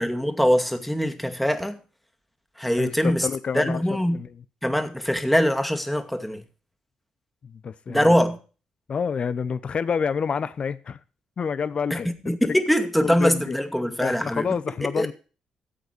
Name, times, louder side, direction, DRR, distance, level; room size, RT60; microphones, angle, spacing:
voice 1, 0.0-1.8 2.6-3.3 3.5-4.2 4.6-6.4 7.9-8.4 11.9-14.6 15.0-15.1, equal, 5° left, 2.2 m, -23 dB
voice 2, 2.8-3.8 4.1-4.3 7.4-8.1 8.9-11.0 11.4-12.1 13.0-13.6 14.0-15.1, left 6 dB, 50° left, 1.0 m, -28 dB
14.0 x 8.2 x 4.6 m
hypercardioid pair, 45°, 2 cm